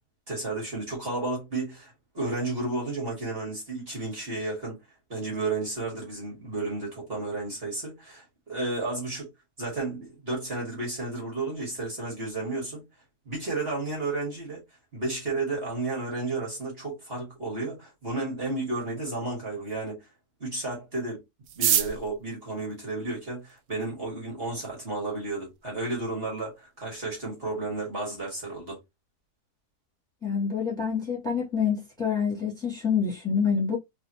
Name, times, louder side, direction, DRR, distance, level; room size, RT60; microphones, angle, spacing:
voice 1, 0.3-4.8 5.1-9.3 9.6-12.8 13.3-14.6 14.9-20.1 20.4-21.2 21.6-28.8, right 2 dB, 40° right, 2.0 m, -32 dB
sound 1, 21.4-23.7 24.5-24.6 24.8-24.9 25.2-25.6 26.0-26.1 26.2-26.7 27.0-27.2 27.5-27.8, right 10 dB, 70° right, 0.9 m, -29 dB
voice 2, 30.2-33.8, left 6 dB, ahead, 2.0 m, -27 dB
4.2 x 2.7 x 2.9 m
omnidirectional pair, 1.6 m